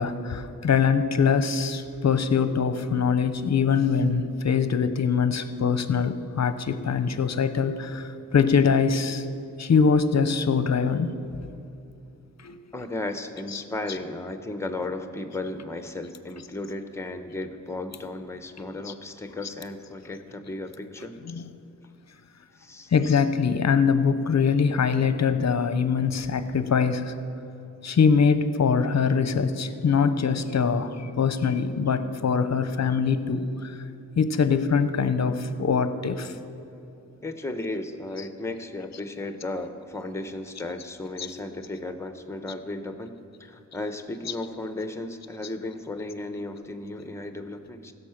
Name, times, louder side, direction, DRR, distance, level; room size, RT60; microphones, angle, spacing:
voice 1, 0.0-9.2 9.6-11.2 12.4-12.6 13.5-13.6 13.9-14.0 18.8-18.9 19.4-19.5 21.2-21.5 22.9-27.1 27.8-33.8 34.2-36.3 38.2-38.3 38.9-39.0 41.2-41.3 44.2-44.4, left 6 dB, 50° left, 11 dB, 0.7 m, -23 dB
voice 2, 12.7-21.1 22.6-22.9 37.2-43.1 43.4-47.9, left 2 dB, 10° left, 8 dB, 0.9 m, -35 dB
15.5 x 6.6 x 5.9 m, 2.7 s
cardioid pair, 60°, 35 cm